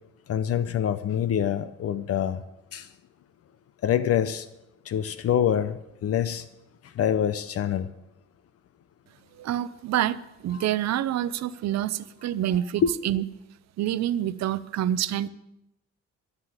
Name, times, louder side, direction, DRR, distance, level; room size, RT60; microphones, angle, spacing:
voice 1, 0.3-2.4 2.7-2.9 3.8-4.5 4.9-6.5 7.0-7.9 10.6-10.7 12.8-12.9, left 9 dB, 55° left, 0.6 m, -25 dB
voice 2, 9.4-13.3 13.8-15.3, right 12 dB, 60° right, 0.6 m, -27 dB
11.5 x 9.8 x 8.0 m
cardioid pair, 150°, 30 cm